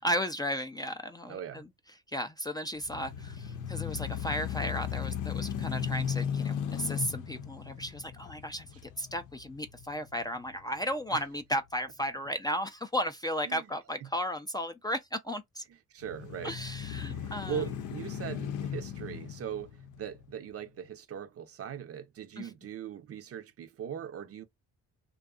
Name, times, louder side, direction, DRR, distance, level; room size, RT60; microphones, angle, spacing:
voice 1, 0.0-1.7 2.1-15.6 16.4-17.6 22.4-22.5, equal, 15° left, 0.4 m, -34 dB
voice 2, 1.3-1.7 11.1-11.2 13.4-13.6 14.0-14.1 15.9-16.6 17.1-24.4, right 8 dB, 50° right, 0.6 m, -40 dB
sound 1, 2.8-10.9 11.4-11.5 16.0-20.5, left 8 dB, 85° left, 0.6 m, -36 dB
2.6 x 2.3 x 2.4 m
cardioid pair, 90°, 30 cm